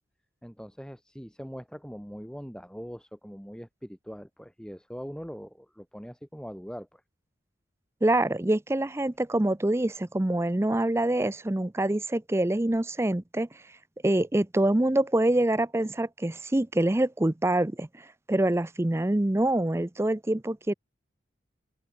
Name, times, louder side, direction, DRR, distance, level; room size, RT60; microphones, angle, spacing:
voice 1, 0.4-7.0, equal, 5° left, 5.9 m, -42 dB
voice 2, 8.0-13.5 14.0-17.9 18.3-20.7, right 1 dB, 15° right, 0.5 m, -25 dB
open air
head